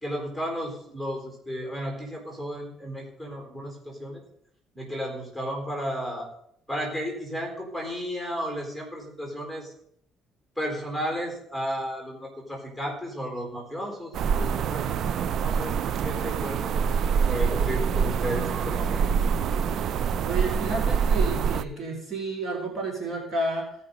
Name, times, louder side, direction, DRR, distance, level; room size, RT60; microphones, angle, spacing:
voice 1, 0.0-4.2 4.7-6.3 6.7-9.7 10.6-19.0, equal, 5° right, 1 dB, 4.1 m, -33 dB
sound 1, 14.1-21.6, right 6 dB, 60° right, 0.4 m, -25 dB
voice 2, 20.2-23.7, right 2 dB, 40° right, 0 dB, 4.1 m, -31 dB
17.0 x 5.8 x 5.3 m, 0.69 s
cardioid pair, 100°, 0 cm